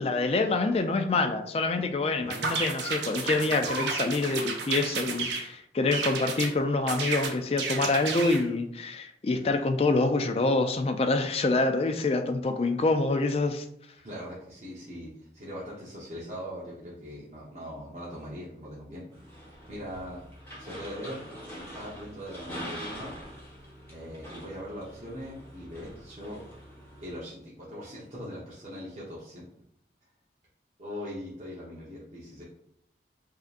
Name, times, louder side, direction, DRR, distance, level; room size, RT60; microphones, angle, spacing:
voice 1, 0.0-13.7, left 3 dB, 35° left, 0.3 m, -26 dB
sound 1, 2.3-5.5 5.9-6.5 6.9-8.4, right 4 dB, 80° right, 0.6 m, -32 dB
voice 2, 14.0-19.0 19.4-20.2 20.6-21.2 21.5-23.1 23.9-26.4 27.0-29.5 30.8-32.4, equal, 40° right, 0.9 m, -41 dB
sound 2, 19.1-27.2, equal, 15° left, 1.3 m, -44 dB
5.0 x 2.8 x 2.5 m
head